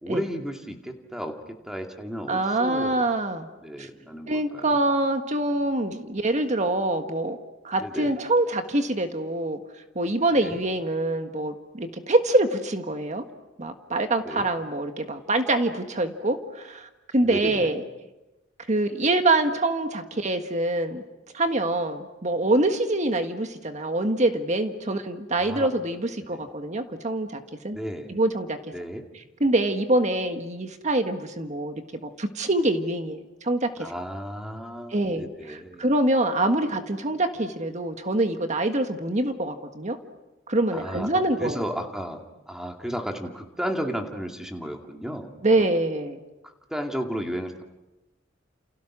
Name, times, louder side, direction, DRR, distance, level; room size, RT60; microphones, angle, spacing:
voice 1, 0.0-3.0 3.6-4.8 7.8-8.2 10.3-10.6 14.2-14.5 17.2-17.7 25.4-25.7 26.3-26.5 27.7-28.1 28.7-29.0 33.8-35.9 40.7-41.1 41.4-45.7 46.4-47.6, equal, 5° right, 3 dB, 2.3 m, -34 dB
voice 2, 2.3-3.5 3.8-3.9 4.3-7.4 7.6-9.6 10.0-13.3 13.6-17.8 18.7-21.0 21.3-27.4 27.6-27.8 28.1-28.6 29.4-31.8 32.2-33.7 34.9-40.0 40.5-41.6 45.4-46.2, right 2 dB, 40° right, 7 dB, 1.7 m, -25 dB
30.0 x 29.0 x 6.2 m, 1.0 s
head